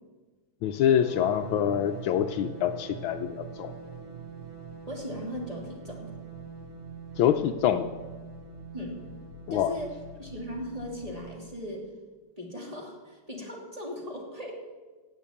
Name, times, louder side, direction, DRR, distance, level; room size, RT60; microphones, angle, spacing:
voice 1, 0.6-3.7 7.2-7.9 9.5-9.7, left 10 dB, 75° left, 8 dB, 1.4 m, -25 dB
sound 1, 1.0-11.2, right 5 dB, 45° right, 4.7 m, -43 dB
voice 2, 4.9-6.1 8.7-9.0 9.5-9.9 10.2-11.9 12.4-14.5, equal, 15° right, -1 dB, 2.7 m, -38 dB
17.5 x 7.0 x 8.5 m, 1.3 s
omnidirectional pair, 2.4 m